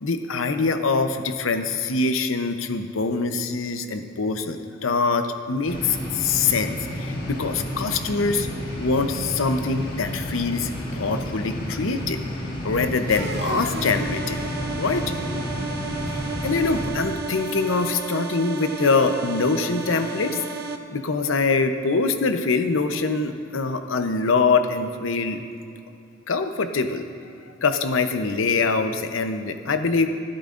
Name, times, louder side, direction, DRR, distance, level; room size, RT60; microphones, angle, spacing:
voice 1, 0.0-8.5 8.8-12.2 12.6-14.4 14.8-15.0 16.1-20.4 20.9-25.4 26.3-27.1 27.6-30.1, left 4 dB, 85° left, 8 dB, 0.7 m, -24 dB
audiovisual control room, 5.7-16.9, equal, 50° left, 1.7 m, -31 dB
sound 1, 13.1-20.8, right 4 dB, 55° right, 0.6 m, -33 dB
26.0 x 8.8 x 2.5 m, 2.6 s
head